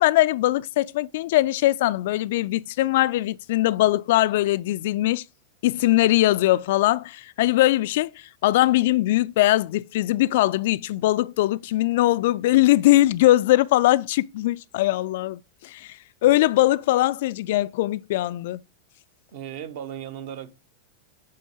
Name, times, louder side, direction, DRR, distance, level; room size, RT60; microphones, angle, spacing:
voice 1, 0.0-5.2 5.6-8.1 8.4-16.0 16.2-18.6, left 16 dB, 55° left, 0.3 m, -21 dB
voice 2, 19.3-20.5, right 10 dB, 50° right, 1.0 m, -36 dB
8.6 x 4.4 x 4.9 m
figure-of-eight pair, 90°, 0 cm